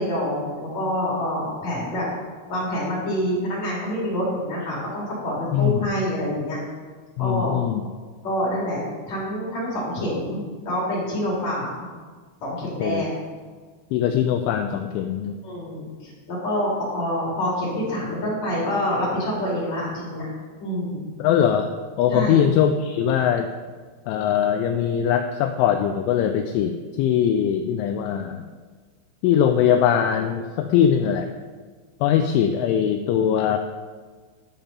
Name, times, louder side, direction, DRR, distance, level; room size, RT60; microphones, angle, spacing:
voice 1, 0.0-2.0 2.5-6.6 7.2-7.5 8.2-8.8 9.1-11.7 12.4-13.1 15.4-20.3 20.6-21.1 22.1-22.4, equal, 40° left, -6 dB, 3.2 m, -26 dB
voice 2, 5.5-5.9 7.2-7.8 12.8-13.0 13.9-15.4 21.2-21.7 22.0-23.5 24.1-28.4 29.2-31.3 32.0-33.6, left 9 dB, 90° left, 6 dB, 2.7 m, -21 dB
10.5 x 7.2 x 5.3 m, 1.5 s
omnidirectional pair, 6.0 m